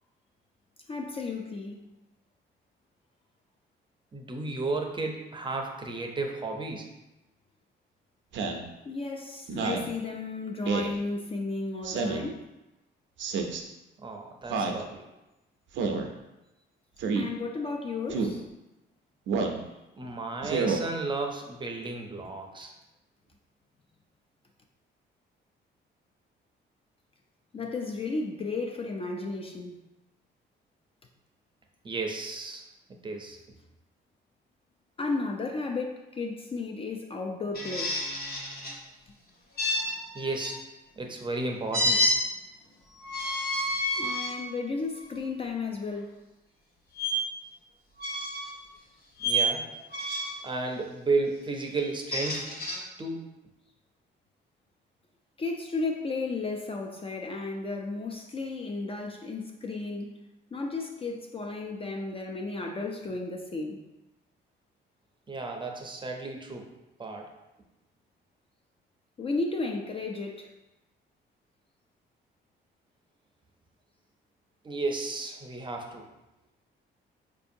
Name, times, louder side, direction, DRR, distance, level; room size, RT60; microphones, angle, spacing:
voice 1, 0.9-1.9 8.8-12.5 17.1-18.4 19.4-19.5 27.5-29.8 35.0-37.9 44.0-46.2 55.4-60.2 60.5-63.8 69.2-70.5, left 3 dB, 30° left, 0.4 m, -34 dB
voice 2, 4.1-6.9 14.0-15.1 19.9-22.7 31.8-32.6 33.0-33.4 40.1-40.6 41.0-42.0 49.2-49.6 50.4-52.5 53.0-53.2 65.3-66.7 67.0-67.3 74.6-76.0, right 3 dB, 25° right, 0.5 m, -33 dB
Speech synthesizer, 8.3-8.6 9.5-9.9 10.6-10.9 11.8-12.3 13.2-13.6 14.5-14.8 15.7-16.1 17.0-17.3 18.1-18.4 19.3-19.6 20.4-20.8, right 4 dB, 70° right, 0.5 m, -29 dB
sound 1, 37.5-38.7 39.6-40.5 41.7-42.2 43.0-44.3 45.0-45.2 47.0-47.1 48.0-48.5 49.2-49.5 49.9-50.4 51.8-52.8, equal, 50° left, 1.0 m, -29 dB
4.4 x 2.6 x 2.6 m
cardioid pair, 90°, 20 cm